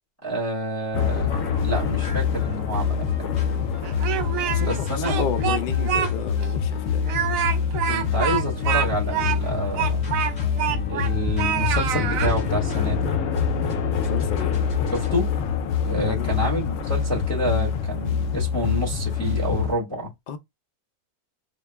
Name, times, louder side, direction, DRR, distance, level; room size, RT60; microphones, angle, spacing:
voice 1, 0.2-3.3 4.6-5.2 7.9-10.1 10.9-13.1 14.9-15.3 15.8-20.1, equal, 10° left, 1.1 m, -28 dB
sound 1, 0.9-19.7, left 7 dB, 65° left, 0.9 m, -25 dB
sound 2, 1.3-15.1, left 3 dB, 50° left, 1.6 m, -40 dB
Speech, 3.8-4.8 5.1-6.1 6.4-6.5 7.0-11.1 11.4-12.3, right 10 dB, 70° right, 0.9 m, -26 dB
voice 2, 4.4-7.0 14.0-14.6 16.0-16.5 20.3-20.4, left 7 dB, 80° left, 0.4 m, -32 dB
4.1 x 2.2 x 3.3 m
omnidirectional pair, 1.7 m